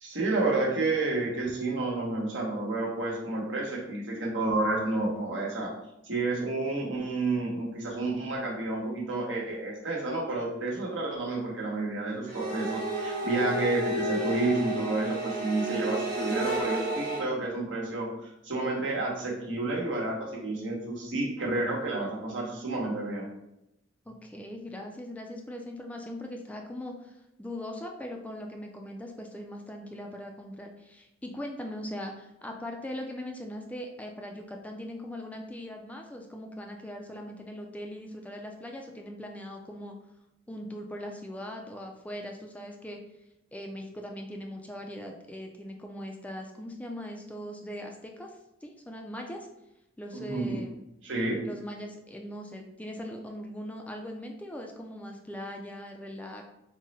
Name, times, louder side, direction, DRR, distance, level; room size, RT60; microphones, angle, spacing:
voice 1, 0.0-5.7 6.0-23.3 50.1-50.6 51.0-51.4, right 2 dB, 80° right, -3 dB, 1.1 m, -30 dB
sound 1, 12.3-17.2, right 2 dB, 45° right, 1.1 m, -31 dB
voice 2, 24.1-40.0 40.5-43.0 43.5-49.5 50.0-50.8 51.4-56.4, left 1 dB, 10° left, 2 dB, 0.3 m, -40 dB
3.7 x 2.1 x 4.0 m, 0.86 s
head